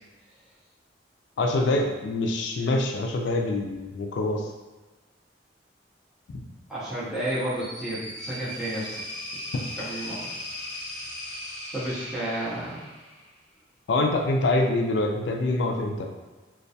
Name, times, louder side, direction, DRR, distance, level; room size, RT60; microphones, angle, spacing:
voice 1, 1.4-4.5 13.9-16.1, left 2 dB, 70° left, 2 dB, 0.3 m, -25 dB
voice 2, 6.7-9.0 9.7-10.3 11.7-12.9, right 1 dB, 5° right, -12 dB, 0.6 m, -31 dB
sound 1, 7.1-13.4, left 1 dB, 35° left, 0.7 m, -38 dB
2.2 x 2.2 x 2.6 m, 1.2 s
head